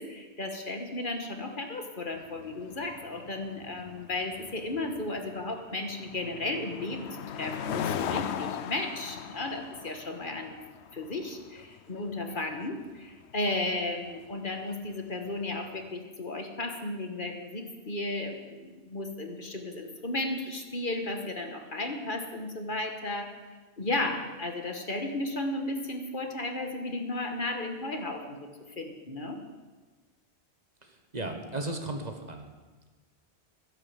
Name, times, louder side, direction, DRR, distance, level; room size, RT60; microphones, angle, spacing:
voice 1, 0.0-7.1 7.3-10.6 10.9-23.3 23.8-28.5 28.8-29.4, left 2 dB, 50° left, 4 dB, 1.6 m, -34 dB
sound 1, 2.1-15.7, left 8 dB, 85° left, 0.9 m, -40 dB
voice 2, 30.8-32.5, right 2 dB, 40° right, 4 dB, 1.4 m, -36 dB
12.5 x 11.0 x 7.3 m, 1.3 s
omnidirectional pair, 1.1 m